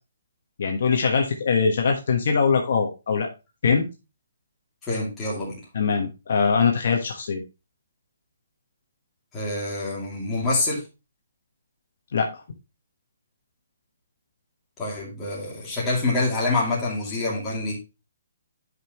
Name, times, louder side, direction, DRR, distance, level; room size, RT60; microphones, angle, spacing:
voice 1, 0.6-3.3 3.6-3.9 5.7-7.4 12.1-12.3, left 5 dB, 50° left, 3 dB, 1.3 m, -22 dB
voice 2, 4.8-5.6 9.3-10.8 14.8-17.8, left 2 dB, 10° left, -6 dB, 2.6 m, -26 dB
10.5 x 5.4 x 3.0 m, 0.27 s
hypercardioid pair, 175°, 0 cm